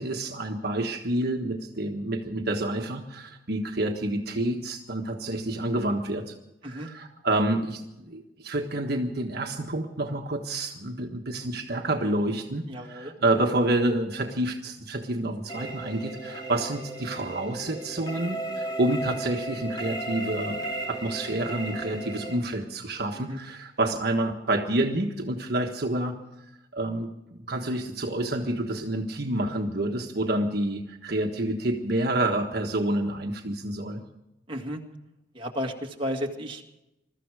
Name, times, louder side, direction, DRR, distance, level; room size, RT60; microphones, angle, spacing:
voice 1, 0.0-6.3 6.6-26.2 26.7-34.0, right 1 dB, 60° right, 3 dB, 1.4 m, -28 dB
voice 2, 12.7-13.4 23.1-23.4 34.5-34.8 35.3-36.6, equal, 30° right, 1 dB, 2.1 m, -33 dB
sound 1, 15.5-22.4, right 1 dB, 25° left, 3.0 m, -35 dB
21.5 x 14.0 x 4.8 m, 0.89 s
head